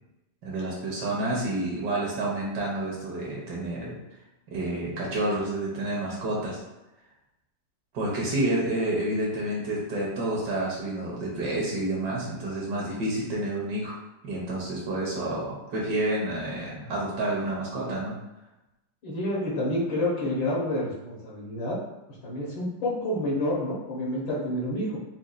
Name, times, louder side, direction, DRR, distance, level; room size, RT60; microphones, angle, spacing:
voice 1, 0.4-4.0 4.5-6.6 7.9-14.0 14.2-18.2, right 1 dB, 65° right, -3 dB, 1.5 m, -29 dB
voice 2, 19.0-21.8 22.2-25.0, left 1 dB, 80° left, -5 dB, 1.8 m, -28 dB
5.3 x 2.3 x 2.4 m, 0.96 s
omnidirectional pair, 2.1 m